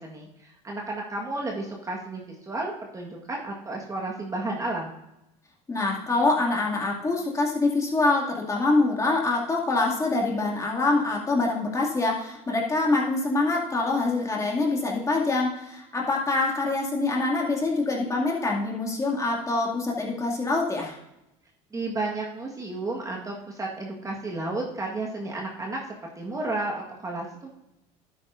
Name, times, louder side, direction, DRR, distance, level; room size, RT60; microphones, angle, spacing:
voice 1, 0.0-4.9 21.7-25.8 26.1-27.5, right 2 dB, 20° right, -1 dB, 1.6 m, -32 dB
voice 2, 5.7-21.0, left 3 dB, 20° left, -2 dB, 2.4 m, -25 dB
11.5 x 8.9 x 2.6 m, 0.88 s
supercardioid pair, 100°, 16 cm